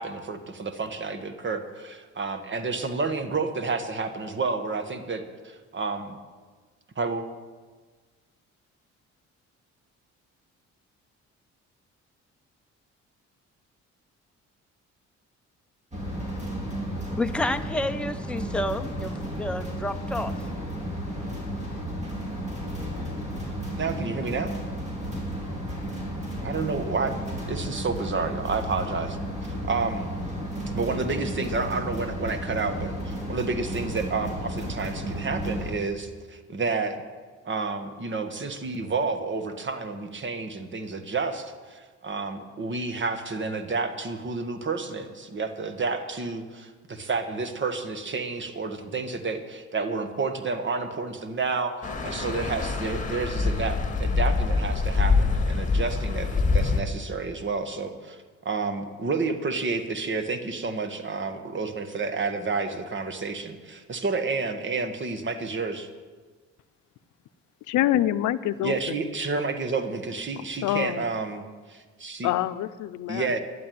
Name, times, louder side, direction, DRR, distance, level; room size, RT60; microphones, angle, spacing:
voice 1, 0.0-6.2 6.9-7.2 23.8-24.5 26.4-29.2 29.7-30.1 30.7-37.0 37.5-51.7 52.0-65.9 68.6-71.4 71.7-72.3 73.1-73.4, right 4 dB, 40° right, 8 dB, 1.6 m, -30 dB
sound 1, 15.9-35.7, equal, 25° right, 4.0 m, -33 dB
voice 2, 17.1-20.3, left 1 dB, 5° left, 8 dB, 0.7 m, -30 dB
sound 2, 51.8-56.8, left 4 dB, 25° left, 2.0 m, -25 dB
voice 3, 67.7-69.0 70.6-71.0 72.2-73.3, left 13 dB, 80° left, 13 dB, 0.6 m, -26 dB
12.0 x 8.3 x 9.4 m, 1.4 s
cardioid pair, 90°, 30 cm